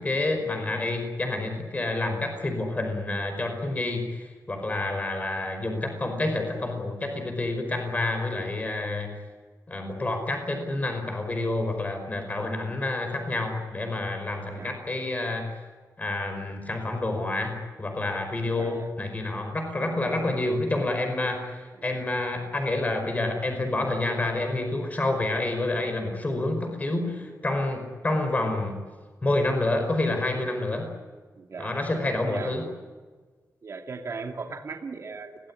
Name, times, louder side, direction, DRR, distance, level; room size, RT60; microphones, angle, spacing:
voice 1, 0.0-9.1 9.7-15.5 16.0-28.8 29.2-30.9 31.6-32.7, left 2 dB, 25° left, 5 dB, 5.0 m, -28 dB
voice 2, 18.6-18.9 21.8-21.9 31.4-31.8 32.3-32.5 33.6-35.5, right 4 dB, 50° right, 3 dB, 2.5 m, -38 dB
29.0 x 18.5 x 9.8 m, 1.4 s
wide cardioid pair, 160°, 6 cm